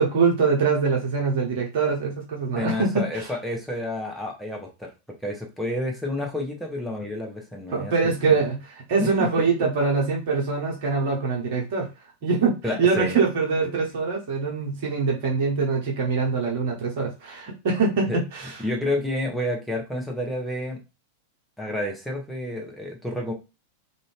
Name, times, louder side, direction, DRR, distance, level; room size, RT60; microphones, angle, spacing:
voice 1, 0.0-3.3 7.7-11.9 12.2-18.6, right 4 dB, 50° right, -1 dB, 1.1 m, -24 dB
voice 2, 2.6-8.4 9.0-9.5 12.6-13.2 13.6-13.8 18.1-18.2 18.6-20.8 21.6-23.3, left 1 dB, ahead, -1 dB, 0.8 m, -30 dB
2.6 x 2.5 x 3.3 m, 0.28 s
figure-of-eight pair, 90°, 0 cm